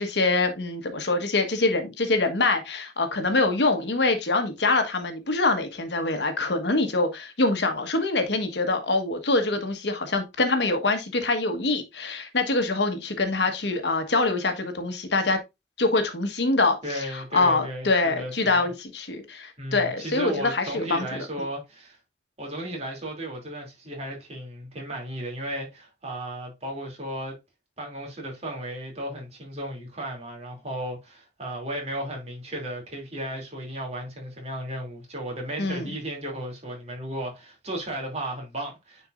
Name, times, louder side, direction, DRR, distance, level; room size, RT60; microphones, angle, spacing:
voice 1, 0.0-15.4 15.8-21.1 35.6-35.9, left 3 dB, 75° left, 1.3 m, -24 dB
voice 2, 16.8-18.7 19.6-22.0 22.4-27.4 27.8-39.1, right 1 dB, 40° right, 2.7 m, -35 dB
9.3 x 4.5 x 2.5 m
head